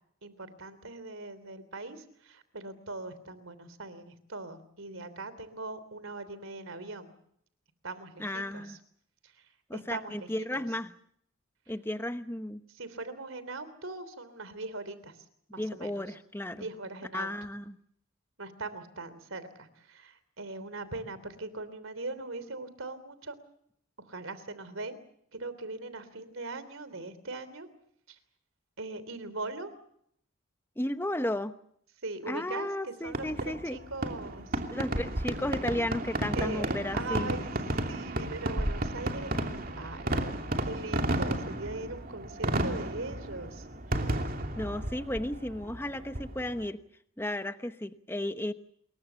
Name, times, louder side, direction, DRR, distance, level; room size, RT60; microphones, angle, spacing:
voice 1, 0.2-7.1 7.8-8.8 9.2-9.3 9.7-10.3 10.5-10.7 12.7-15.2 15.5-16.0 16.5-17.3 18.4-23.4 24.1-24.9 25.4-27.7 28.1-28.2 28.8-29.7 32.0-34.6 36.3-37.5 37.9-40.1 40.6-44.1, right 3 dB, 75° right, 14 dB, 3.3 m, -40 dB
voice 2, 8.2-8.8 9.7-10.9 11.7-12.6 15.6-16.7 17.1-17.8 30.8-31.5 32.3-33.8 34.7-37.3 44.6-46.8 47.2-48.5, left 1 dB, 10° left, 10 dB, 0.9 m, -34 dB
Fireworks, 33.1-46.6, right 1 dB, 45° right, 2.7 m, -33 dB
27.5 x 22.5 x 7.1 m, 0.70 s
head